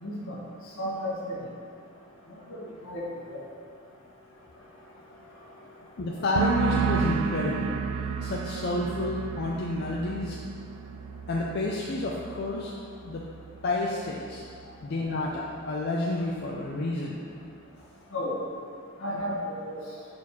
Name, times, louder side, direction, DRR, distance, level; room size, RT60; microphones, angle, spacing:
voice 1, 0.0-0.4 0.8-1.4 2.5-3.4 18.1-18.4 19.0-19.8, left 1 dB, 75° left, -5 dB, 1.4 m, -33 dB
voice 2, 6.0-7.9 8.2-10.4 11.3-13.3 13.6-14.4 14.8-17.2, left 2 dB, 50° left, -3 dB, 0.5 m, -30 dB
sound 1, 6.4-13.8 14.1-14.6, right 6 dB, 70° right, 0.3 m, -32 dB
6.4 x 4.3 x 4.1 m, 2.3 s
head